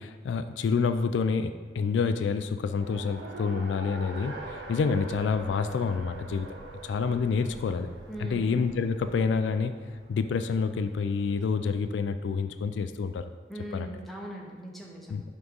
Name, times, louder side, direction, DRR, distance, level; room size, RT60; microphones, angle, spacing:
voice 1, 0.0-4.3 4.7-6.5 6.8-7.9 8.2-9.7 10.1-13.3 13.7-13.9 15.1-15.2, left 5 dB, 75° left, 10 dB, 0.3 m, -28 dB
Race car auto racing, 2.7-11.8, right 2 dB, 75° right, 1.1 m, -44 dB
Train, 3.9-9.7, right 1 dB, 25° right, 0.5 m, -52 dB
voice 2, 8.1-8.5 13.5-15.1, right 1 dB, ahead, -2 dB, 0.8 m, -40 dB
6.1 x 3.6 x 5.3 m, 1.5 s
head